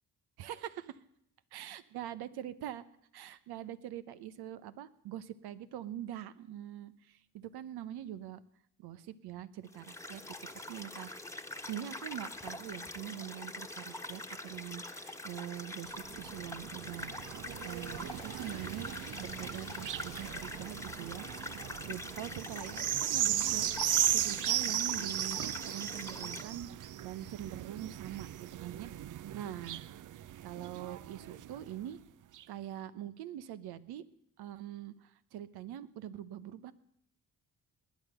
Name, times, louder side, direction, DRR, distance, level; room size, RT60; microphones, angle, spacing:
voice 1, 0.4-1.0 1.5-2.8 3.1-8.4 8.8-11.4 11.7-17.1 17.6-18.9 19.2-21.3 21.9-22.8 23.1-25.4 25.6-28.9 29.3-29.8 30.4-32.0 32.5-34.0 34.4-36.7, right 11 dB, 80° right, 14 dB, 0.9 m, -44 dB
sound 1, 9.7-26.4, left 2 dB, 5° left, 1.3 m, -44 dB
sound 2, 15.9-31.7 32.4-32.5, right 11 dB, 55° right, 0.6 m, -36 dB
sound 3, 17.5-21.6, left 10 dB, 75° left, 1.1 m, -57 dB
19.5 x 9.3 x 6.7 m, 0.74 s
supercardioid pair, 60°, 38 cm